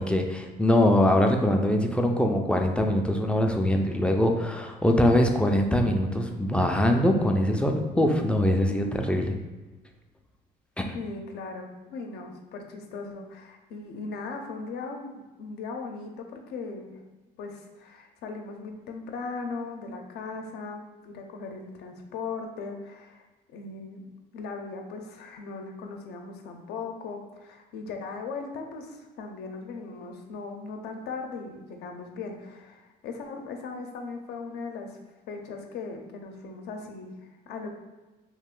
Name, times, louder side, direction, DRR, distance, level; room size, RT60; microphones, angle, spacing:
voice 1, 0.0-9.4 10.8-10.9, left 1 dB, 5° left, 3 dB, 0.3 m, -23 dB
voice 2, 10.9-17.0 17.4-23.2 23.5-24.0 24.3-35.0 35.3-37.7, left 4 dB, 75° left, 3 dB, 0.5 m, -38 dB
2.9 x 2.4 x 3.6 m, 1.2 s
cardioid pair, 110°, 17 cm